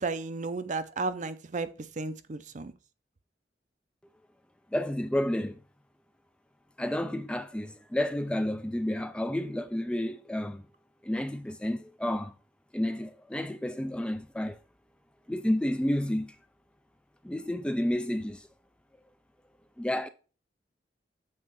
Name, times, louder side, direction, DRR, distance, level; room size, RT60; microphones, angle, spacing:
voice 1, 0.0-1.7 2.0-2.7, right 3 dB, 45° right, 0.6 m, -33 dB
voice 2, 4.7-5.6 6.8-10.6 11.0-12.3 12.7-14.6 15.3-16.4 17.2-18.5 19.8-20.1, left 1 dB, 5° left, 0.3 m, -30 dB
7.6 x 3.6 x 5.4 m
head